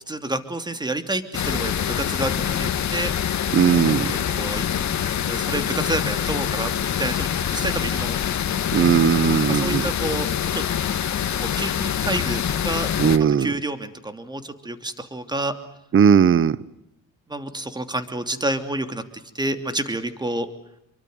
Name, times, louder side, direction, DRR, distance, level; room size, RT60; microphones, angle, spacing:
voice 1, 0.1-3.1 4.4-4.6 5.2-6.7 7.0-8.6 9.5-10.6 11.1-12.9 13.4-15.5 17.3-19.0 19.3-20.5, right 1 dB, 10° right, 2.8 m, -29 dB
sound 1, 1.3-13.2, left 9 dB, 50° left, 2.0 m, -25 dB
voice 2, 3.5-4.2 8.7-9.9 13.0-13.5 15.9-16.6, right 7 dB, 35° right, 0.9 m, -17 dB
27.5 x 23.5 x 8.0 m
cardioid pair, 115°, 35 cm